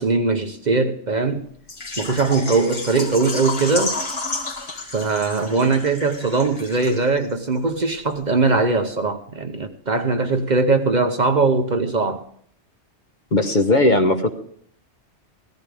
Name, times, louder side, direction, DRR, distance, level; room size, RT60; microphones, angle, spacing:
voice 1, 0.0-1.5 2.0-4.0 4.9-12.2, right 3 dB, 45° right, 0.9 m, -20 dB
Water / Liquid, 1.7-7.3 7.6-7.7 8.1-8.2, left 2 dB, 60° left, 2.6 m, -31 dB
voice 2, 13.3-14.3, left 2 dB, 45° left, 1.1 m, -17 dB
15.5 x 14.5 x 3.4 m
omnidirectional pair, 1.2 m